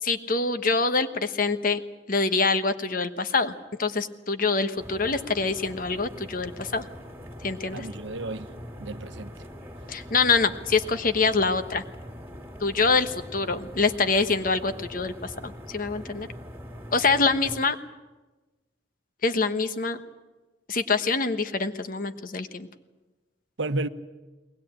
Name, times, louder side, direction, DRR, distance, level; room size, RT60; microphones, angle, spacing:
voice 1, 0.0-1.8 2.1-3.5 3.8-6.9 7.4-7.9 9.9-11.8 12.6-16.3 16.9-17.8 19.2-20.0 20.7-22.7, left 4 dB, 50° left, 1.2 m, -25 dB
sound 1, 4.8-17.6, equal, 10° right, 2.5 m, -42 dB
voice 2, 7.7-8.5 8.8-9.3 23.6-23.9, right 2 dB, 80° right, 1.0 m, -31 dB
22.0 x 19.5 x 8.9 m
head